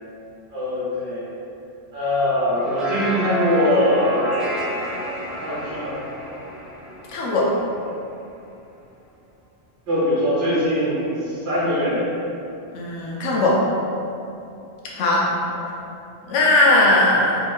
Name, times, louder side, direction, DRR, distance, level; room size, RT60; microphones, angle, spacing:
voice 1, 0.5-1.2 1.9-4.4 5.4-5.9 9.9-12.0 15.5-15.6, left 1 dB, 75° right, -10 dB, 1.1 m, -22 dB
sound 1, 2.5-8.0, equal, ahead, 0.4 m, -29 dB
voice 2, 7.1-7.5 12.7-13.6 14.9-15.3 16.3-17.4, left 2 dB, 85° left, -4 dB, 1.0 m, -18 dB
3.6 x 3.1 x 2.5 m, 2.7 s
omnidirectional pair, 1.2 m